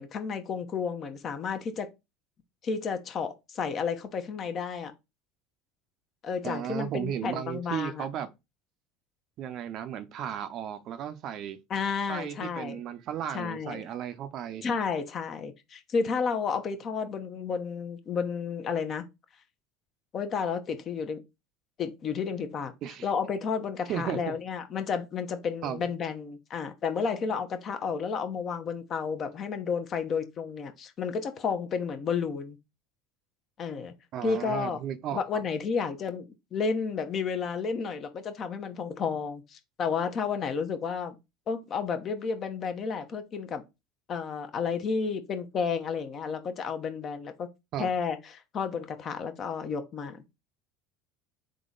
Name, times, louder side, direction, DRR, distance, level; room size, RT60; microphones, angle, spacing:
voice 1, 0.0-1.9 2.6-4.9 6.2-8.0 11.7-12.8 13.3-13.9 14.6-19.0 20.1-21.2 21.8-22.7 23.0-32.6 33.6-33.9 34.2-34.8 35.1-41.1 41.5-43.6 44.1-47.5 47.8-50.2, left 5 dB, 40° left, 0.8 m, -31 dB
voice 2, 6.4-8.3 9.4-11.6 12.1-14.7 22.8-23.1 23.9-24.4 25.6-25.9 34.1-35.4 47.7-47.9, right 10 dB, 50° right, 0.6 m, -35 dB
3.9 x 3.0 x 3.8 m
hypercardioid pair, 75°, 0 cm